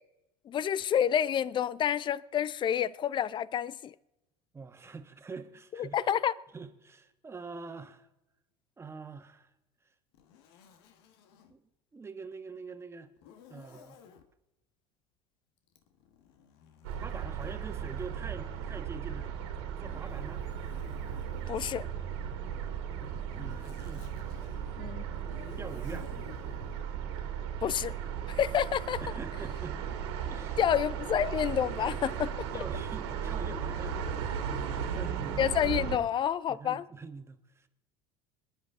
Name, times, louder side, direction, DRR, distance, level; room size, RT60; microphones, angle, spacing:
voice 1, 0.5-3.9 5.8-6.3 21.5-21.8 24.8-25.0 27.6-27.9 28.3-29.0 30.6-32.5 35.4-36.8, left 9 dB, 35° left, 0.6 m, -29 dB
voice 2, 4.5-6.0 6.5-8.1 8.8-9.5 11.5-13.1 13.5-14.0 17.0-19.4 19.8-20.4 23.0-24.3 25.6-26.1 29.0-29.8 30.3-30.6 32.5-35.5 36.5-37.7, right 4 dB, 20° right, 1.5 m, -45 dB
Zipper (clothing), 10.1-11.5 13.2-14.3 15.7-18.9 19.7-22.0 22.9-26.9, left 8 dB, 70° left, 1.5 m, -54 dB
sound 1, 16.8-36.0, right 8 dB, 75° right, 2.3 m, -36 dB
27.0 x 10.5 x 3.7 m
hypercardioid pair, 80°, 14 cm